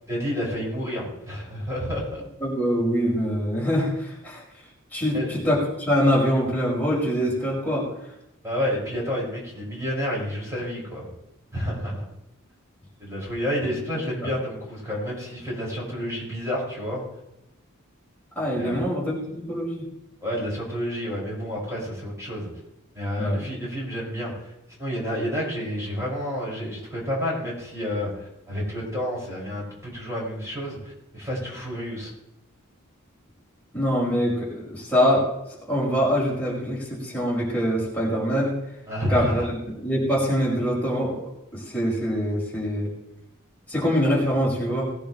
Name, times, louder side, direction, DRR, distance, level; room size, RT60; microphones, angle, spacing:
voice 1, 0.1-2.2 5.0-5.3 8.4-11.0 11.5-12.0 13.0-17.0 18.5-18.8 20.2-22.5 22.9-24.5 24.8-32.1 38.9-39.3, equal, 15° right, -5 dB, 5.9 m, -30 dB
voice 2, 2.4-4.4 4.9-7.9 13.6-13.7 18.4-19.9 23.2-23.4 33.7-35.3 35.7-38.6 39.1-41.2 41.5-42.9 43.7-44.9, equal, 10° left, -5 dB, 5.2 m, -24 dB
19.5 x 10.5 x 3.2 m, 0.85 s
head